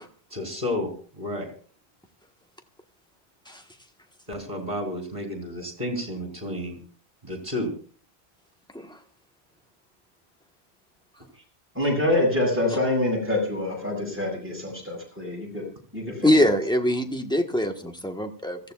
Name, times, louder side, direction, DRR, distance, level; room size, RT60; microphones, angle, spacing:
voice 1, 0.3-1.5 4.3-6.8 7.2-7.7, left 1 dB, 35° right, 2 dB, 4.2 m, -31 dB
voice 2, 11.7-15.6 15.9-16.4, left 1 dB, 10° right, -3 dB, 6.6 m, -26 dB
voice 3, 16.2-18.6, left 1 dB, 5° left, 4 dB, 1.2 m, -23 dB
25.5 x 15.0 x 2.4 m, 0.41 s
omnidirectional pair, 1.1 m